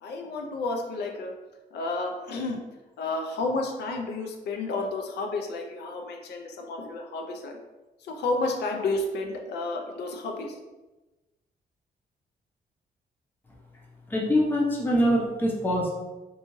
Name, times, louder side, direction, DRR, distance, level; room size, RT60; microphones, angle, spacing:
voice 1, 0.0-1.3 1.7-2.6 3.0-7.6 8.0-10.6, left 2 dB, 85° left, 2 dB, 0.5 m, -31 dB
voice 2, 14.1-15.9, equal, 10° left, -4 dB, 0.5 m, -24 dB
2.7 x 2.3 x 3.0 m, 1.1 s
wide cardioid pair, 175°, 17 cm